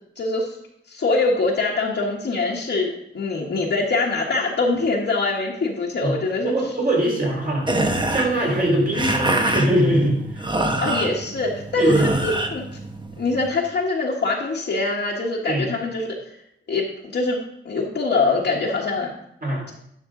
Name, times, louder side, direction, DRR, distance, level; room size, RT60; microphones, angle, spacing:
voice 1, 0.2-0.5 0.9-6.5 10.8-12.6 13.2-16.2 16.7-17.4 17.6-19.1, left 3 dB, 60° left, -5 dB, 1.3 m, -23 dB
voice 2, 6.4-7.7 8.1-10.5 11.8-12.2 15.5-15.6 19.4-19.6, right 1 dB, 45° right, -3 dB, 3.9 m, -21 dB
sound 1, 7.6-13.5, right 1 dB, 20° right, 1.0 m, -26 dB
10.5 x 5.9 x 3.7 m, 0.75 s
wide cardioid pair, 85°, 21 cm